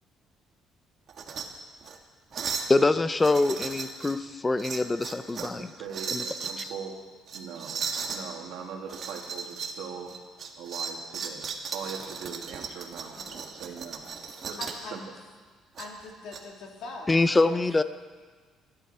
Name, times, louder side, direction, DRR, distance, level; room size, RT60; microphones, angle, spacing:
sound 1, 1.1-1.5 1.8-2.0 2.3-2.7 3.2-4.2 4.6-5.6 5.9-6.7 7.3-8.2 8.9-9.8 10.1-14.8 15.8-16.4, right 6 dB, 50° right, 1.6 m, -36 dB
voice 1, 2.7-5.7 6.1-6.2 6.6-6.7 17.1-17.8, left 3 dB, 15° left, 12 dB, 0.6 m, -24 dB
voice 2, 5.4-7.0 7.3-10.1 10.6-13.1 13.5-14.0 14.4-14.6 14.8-15.0, right 7 dB, 80° right, 1 dB, 2.5 m, -41 dB
voice 3, 13.1-13.5 14.6-15.1 15.8-17.7, left 3 dB, 70° left, -1 dB, 3.4 m, -42 dB
24.0 x 11.5 x 4.4 m, 1.5 s
cardioid pair, 125°, 0 cm